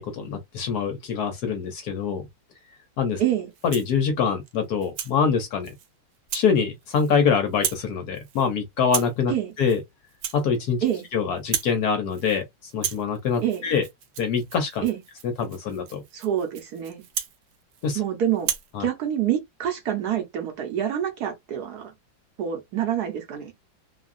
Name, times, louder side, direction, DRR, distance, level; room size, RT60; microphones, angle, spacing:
voice 1, 0.0-2.2 3.0-3.2 3.6-5.7 6.3-9.3 9.6-9.8 10.3-10.8 11.1-12.4 12.7-13.8 14.2-14.8 15.2-16.0 17.8-18.0 18.7-18.9, left 6 dB, 65° left, 1.1 m, -24 dB
voice 2, 3.2-3.5 9.3-9.5 10.8-11.0 13.4-13.6 14.8-15.0 16.1-17.0 17.9-18.5 18.8-21.9 22.4-23.6, right 10 dB, 65° right, 1.2 m, -26 dB
Rattle (instrument), 3.5-4.0 4.5-5.2 5.6-5.9 6.3-6.5 6.8-7.2 7.5-7.9 8.2-8.5 8.8-9.2 9.6-9.8 10.1-11.1 11.4-11.8 12.1-12.4 12.7-18.0 18.4-18.7, right 9 dB, 85° right, 1.4 m, -34 dB
3.2 x 2.3 x 2.4 m
omnidirectional pair, 2.1 m